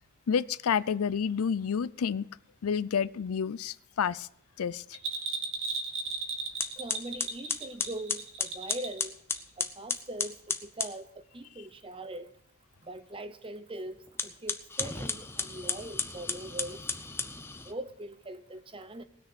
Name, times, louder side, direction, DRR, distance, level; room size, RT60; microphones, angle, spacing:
voice 1, 0.3-2.3 2.6-4.3 4.6-4.8, left 7 dB, 80° left, 0.4 m, -29 dB
Bell, 4.9-9.1 9.3-9.4, right 4 dB, 60° right, 1.8 m, -36 dB
sound 1, 6.1-6.2 6.6-11.0 14.1-17.7, left 4 dB, 10° left, 0.6 m, -34 dB
voice 2, 6.8-9.1 9.6-12.3 12.8-16.8 17.6-19.0, right 1 dB, 25° right, 0.7 m, -41 dB
19.5 x 6.5 x 6.1 m
head